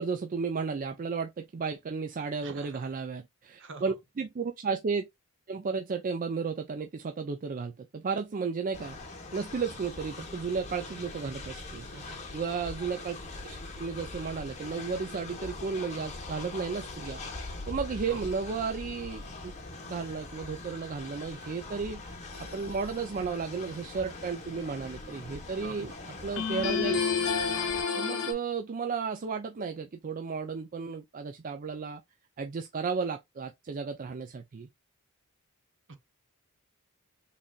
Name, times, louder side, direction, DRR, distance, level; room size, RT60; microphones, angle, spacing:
voice 1, 0.0-5.1 5.5-9.0 9.3-13.2 13.4-17.2 17.7-19.5 19.9-22.2 22.5-25.9 26.2-27.0 28.0-32.0 32.4-34.7, right 5 dB, 40° right, 0.4 m, -33 dB
voice 2, 2.4-2.9 3.6-3.9 11.8-12.2 18.1-18.3 25.6-26.0 35.9-36.0, right 3 dB, 55° right, 0.9 m, -45 dB
Train, 8.7-27.8, left 2 dB, 30° left, 1.1 m, -42 dB
sound 1, 22.3-23.0 26.4-28.3, left 6 dB, 65° left, 1.1 m, -29 dB
3.8 x 3.3 x 2.3 m
head